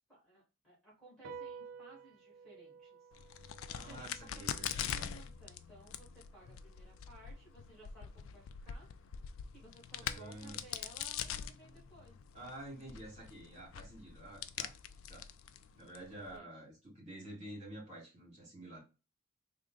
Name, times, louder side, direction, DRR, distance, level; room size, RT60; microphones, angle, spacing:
voice 1, 0.1-3.0 3.7-4.6 4.9-9.1 9.5-12.2 16.1-16.6, right 2 dB, 5° left, -5 dB, 1.4 m, -58 dB
sound 1, 1.2-8.0, right 6 dB, 65° right, 0.5 m, -54 dB
Crack, 3.1-16.4, left 9 dB, 75° left, 0.3 m, -44 dB
voice 2, 3.7-5.0 10.0-10.6 12.3-14.7 15.1-15.3 15.7-18.8, right 1 dB, 35° right, -3 dB, 2.1 m, -49 dB
3.6 x 2.1 x 3.7 m, 0.32 s
head